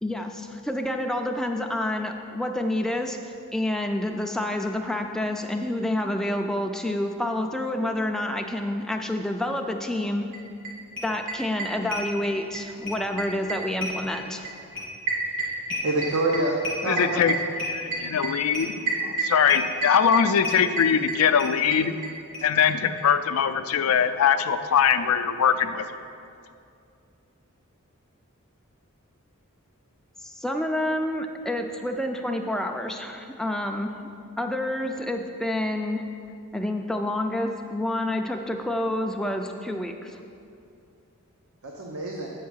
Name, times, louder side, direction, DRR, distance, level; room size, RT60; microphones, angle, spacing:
voice 1, 0.0-3.2 3.5-10.3 11.0-14.5 30.2-33.9 34.4-36.0 36.5-40.2, left 1 dB, ahead, 3 dB, 0.3 m, -28 dB
sound 1, 10.3-10.4 10.6-10.7 11.0-12.6 12.9-22.1 22.3-22.4 22.7-22.8 23.0-23.1, right 2 dB, 60° right, 1.8 m, -29 dB
voice 2, 15.8-17.2 41.6-42.3, right 2 dB, 75° right, -1 dB, 0.7 m, -26 dB
voice 3, 16.9-17.4 17.7-22.0 22.4-25.8, left 7 dB, 75° left, 10 dB, 0.4 m, -22 dB
8.1 x 4.7 x 6.2 m, 2.5 s
head